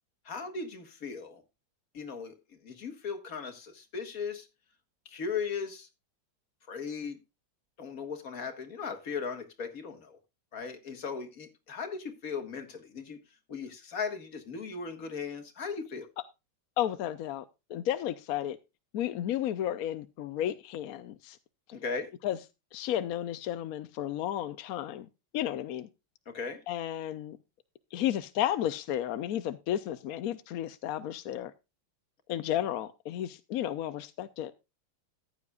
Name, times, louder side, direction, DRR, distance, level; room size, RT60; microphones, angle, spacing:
voice 1, 0.3-1.4 1.9-2.3 2.6-4.5 5.1-5.9 6.7-7.2 7.8-10.2 10.5-13.2 13.5-16.1 21.7-22.1 26.3-26.6, left 5 dB, 45° left, 2.0 m, -37 dB
voice 2, 16.8-17.4 17.7-18.6 18.9-21.4 22.2-22.4 22.7-25.1 25.3-25.9 26.7-27.4 27.9-31.5 32.3-34.5, left 11 dB, 70° left, 0.8 m, -32 dB
14.5 x 9.6 x 2.3 m
omnidirectional pair, 2.2 m